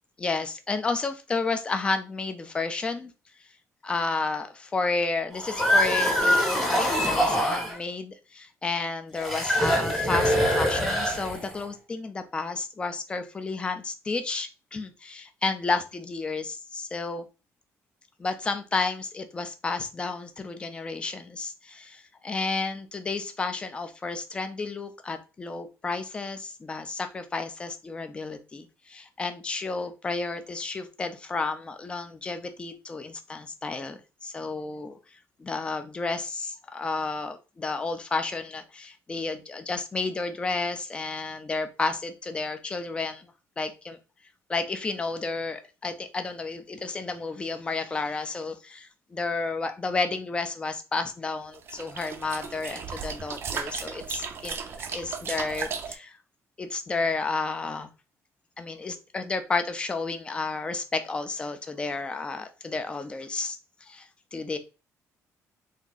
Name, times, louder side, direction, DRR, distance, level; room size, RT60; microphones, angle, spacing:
voice 1, 0.2-3.1 3.8-17.3 18.2-43.3 43.6-44.0 44.5-56.2 56.6-57.9 58.6-64.6, left 3 dB, 15° left, 8 dB, 0.5 m, -31 dB
sound 1, 5.3-7.8 9.2-11.6, equal, ahead, 1.1 m, -24 dB
sound 2, 51.5-55.9, right 6 dB, 40° right, 0.5 m, -35 dB
3.6 x 2.7 x 3.8 m, 0.31 s
cardioid pair, 180°, 6 cm